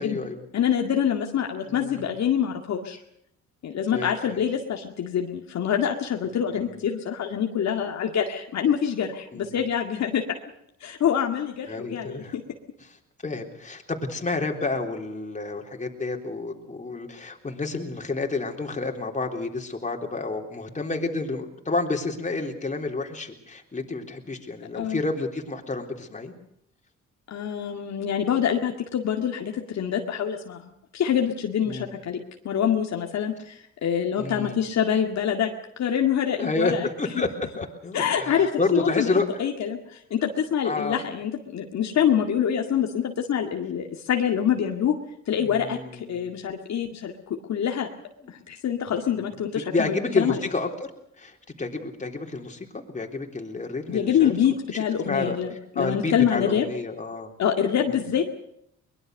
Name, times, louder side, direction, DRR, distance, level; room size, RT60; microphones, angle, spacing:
voice 1, 0.0-0.4 1.7-2.1 3.9-4.5 6.2-6.8 9.3-9.7 11.7-12.4 12.8-13.0 13.2-26.3 31.6-31.9 34.2-34.6 36.4-37.3 37.6-39.3 40.6-41.0 45.4-46.2 48.2-48.4 48.9-50.9 51.2-54.4 55.0-55.4 55.8-57.3 57.9-58.2, left 3 dB, 25° left, 2 dB, 3.6 m, -30 dB
voice 2, 0.5-3.0 3.6-10.4 10.8-12.4 24.7-25.0 27.3-30.6 30.9-32.2 32.4-35.5 35.8-36.9 37.9-39.1 39.4-45.0 45.3-47.1 47.5-47.9 48.3-50.4 53.9-56.6 57.4-58.3, left 8 dB, 65° left, 3 dB, 2.1 m, -25 dB
23.0 x 21.0 x 6.5 m, 0.73 s
cardioid pair, 90°, 30 cm